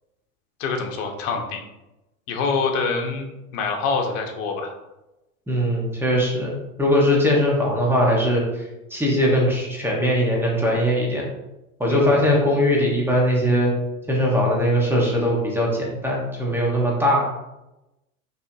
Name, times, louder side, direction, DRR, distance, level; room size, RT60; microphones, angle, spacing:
voice 1, 0.6-1.6 2.3-3.3 3.5-4.7 11.9-12.2, left 4 dB, 60° left, 3 dB, 1.2 m, -25 dB
voice 2, 5.5-6.5 6.8-8.6 8.9-11.2 11.8-13.7 14.1-17.3, equal, 5° right, -3 dB, 1.4 m, -20 dB
5.4 x 3.3 x 2.8 m, 0.97 s
hypercardioid pair, 95°, 44 cm